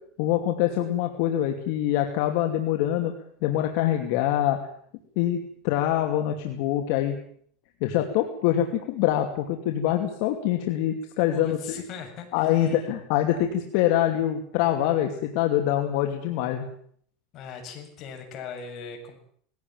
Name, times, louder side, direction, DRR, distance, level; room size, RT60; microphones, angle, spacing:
voice 1, 0.2-3.1 3.4-4.6 5.2-7.2 7.8-11.8 12.3-16.6, left 12 dB, 65° left, 4 dB, 2.6 m, -24 dB
voice 2, 11.2-12.9 17.3-19.2, left 6 dB, 40° left, 3 dB, 7.2 m, -39 dB
20.5 x 17.0 x 9.1 m, 0.62 s
supercardioid pair, 145°, 0 cm